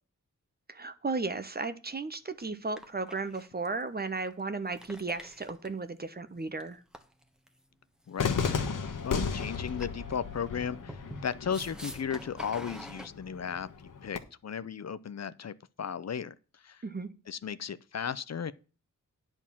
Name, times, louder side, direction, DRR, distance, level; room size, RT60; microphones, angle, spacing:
voice 1, 0.7-6.8 16.8-17.1, right 3 dB, 30° right, 1.0 m, -35 dB
sound 1, 1.9-2.0 2.4-2.5 2.8-3.8 4.2-4.3 4.7-5.8 6.6-7.5 8.2-8.8 9.1-9.2 9.8-10.2 10.9-13.1, equal, ahead, 1.3 m, -46 dB
voice 2, 8.1-8.6 9.0-16.3 16.6-16.8 17.3-18.5, left 7 dB, 55° left, 0.6 m, -35 dB
Cheering / Fireworks, 8.2-14.2, left 5 dB, 90° left, 1.5 m, -35 dB
10.5 x 4.5 x 7.3 m
wide cardioid pair, 95°, 31 cm